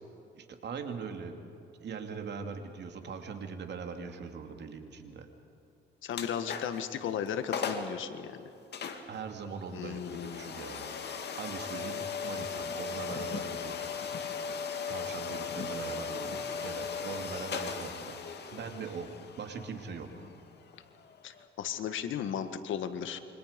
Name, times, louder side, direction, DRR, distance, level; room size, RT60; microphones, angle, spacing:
voice 1, 0.3-1.4 1.8-5.3 9.1-18.2 18.5-19.1 19.4-20.3, right 5 dB, 60° right, 5 dB, 2.8 m, -41 dB
voice 2, 6.0-8.5 9.7-10.5 21.2-23.2, left 8 dB, 75° left, 9 dB, 1.7 m, -36 dB
sound 1, 6.1-6.9 7.3-7.4 7.5-8.0 8.7-21.4, left 6 dB, 55° left, 2.5 m, -38 dB
28.5 x 25.0 x 5.3 m, 2.8 s
cardioid pair, 90°, 20 cm